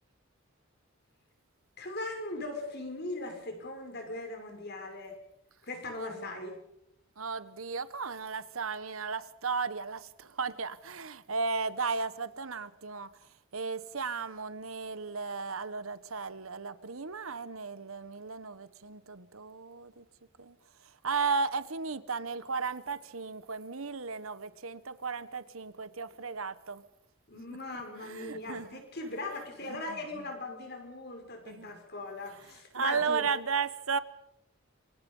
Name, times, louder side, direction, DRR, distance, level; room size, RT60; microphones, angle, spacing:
voice 1, 1.8-5.2 5.6-6.6 27.3-33.3, left 2 dB, 50° left, 5.9 m, -39 dB
voice 2, 5.9-6.3 7.2-13.1 13.5-20.0 20.4-20.6 21.0-26.8 28.0-28.8 29.7-30.0 31.4-31.7 32.7-34.0, right 5 dB, 85° right, 1.3 m, -35 dB
27.0 x 25.5 x 5.6 m
head